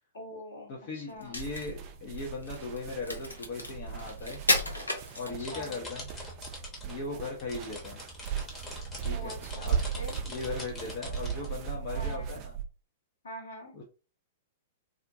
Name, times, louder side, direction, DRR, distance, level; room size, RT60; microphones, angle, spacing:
voice 1, 0.1-1.3 5.4-5.8 9.1-10.2 11.9-12.4 13.2-13.7, equal, 70° left, -1 dB, 1.1 m, -44 dB
voice 2, 0.7-4.4 5.1-6.1 6.9-8.0 9.0-9.8 10.3-12.6 13.7-13.8, left 3 dB, 45° left, -2 dB, 0.6 m, -38 dB
Crack, 1.1-5.7, left 1 dB, 90° left, 0.6 m, -33 dB
sound 1, 1.3-12.6, right 7 dB, 40° right, 0.4 m, -37 dB
sound 2, 5.4-6.9 7.2-11.5, left 2 dB, 20° left, 0.9 m, -44 dB
2.4 x 2.1 x 2.6 m, 0.33 s
figure-of-eight pair, 105°, 0 cm